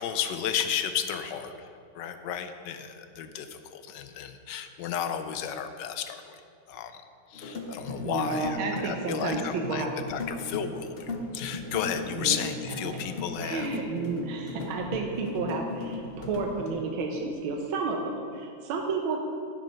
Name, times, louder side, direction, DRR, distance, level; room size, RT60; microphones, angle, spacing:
voice 1, 0.0-1.5 1.9-6.4 6.7-7.0 7.3-13.7, left 8 dB, 70° left, 8 dB, 1.2 m, -33 dB
sound 1, 7.3-16.7, left 2 dB, 45° left, 0.8 m, -37 dB
voice 2, 8.0-9.9 12.1-12.4 13.4-19.2, right 4 dB, 85° right, 1 dB, 1.6 m, -31 dB
9.7 x 7.5 x 5.6 m, 2.4 s
omnidirectional pair, 2.2 m